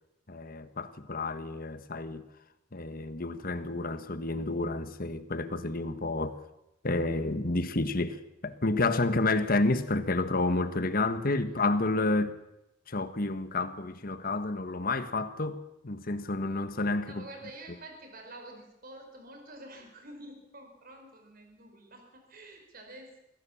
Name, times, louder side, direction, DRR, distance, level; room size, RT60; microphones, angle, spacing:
voice 1, 0.3-2.3 2.7-6.4 6.8-12.4 12.9-17.2, left 2 dB, 50° left, 1.4 m, -30 dB
voice 2, 17.1-23.2, right 1 dB, 50° right, 4.8 m, -48 dB
23.5 x 16.0 x 7.2 m
head